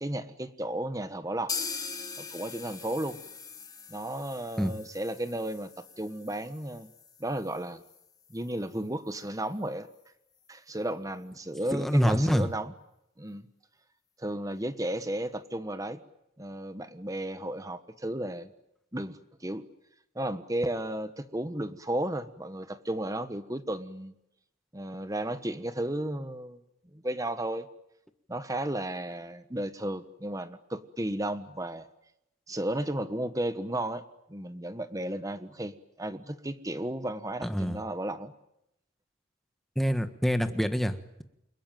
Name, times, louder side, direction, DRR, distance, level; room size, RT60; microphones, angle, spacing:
voice 1, 0.0-1.5 2.2-3.2 3.9-6.9 7.2-7.8 8.3-9.9 10.5-12.7 13.2-13.5 14.2-16.0 16.4-18.5 18.9-19.7 20.1-24.1 24.7-26.6 26.9-27.7 28.3-31.9 32.5-34.0 34.3-38.3, right 1 dB, 15° right, 11 dB, 1.3 m, -34 dB
sound 1, 1.5-9.2 9.5-9.6 9.9-10.0 10.5-10.6, left 5 dB, 20° left, 1.8 m, -42 dB
voice 2, 11.7-12.5 37.4-37.8 39.7-41.2, equal, ahead, 8 dB, 1.4 m, -26 dB
29.0 x 21.5 x 9.2 m, 0.85 s
head